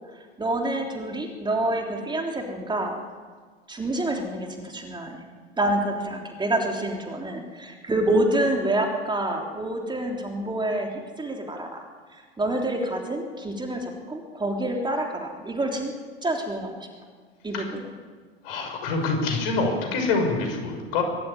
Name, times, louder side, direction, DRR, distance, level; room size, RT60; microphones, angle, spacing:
voice 1, 0.4-3.0 3.7-5.2 5.6-11.9 12.1-15.9 16.2-16.9 17.4-17.9, right 1 dB, 15° right, 2 dB, 3.5 m, -27 dB
voice 2, 18.4-21.0, left 3 dB, 60° left, 4 dB, 6.2 m, -25 dB
23.5 x 14.0 x 9.8 m, 1.5 s
figure-of-eight pair, 85°, 32 cm